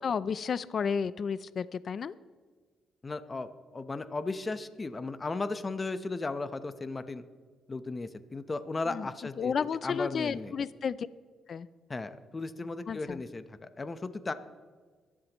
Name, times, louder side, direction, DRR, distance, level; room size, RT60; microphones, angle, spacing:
voice 1, 0.0-2.1 8.9-9.1 9.4-11.1 11.5-11.7 12.9-13.2, left 6 dB, 55° left, 16 dB, 0.4 m, -32 dB
voice 2, 3.0-7.2 7.7-9.5 9.8-10.5 11.9-14.3, left 3 dB, 30° left, 11 dB, 0.9 m, -36 dB
25.0 x 11.0 x 3.1 m, 1.5 s
cardioid pair, 80°, 0 cm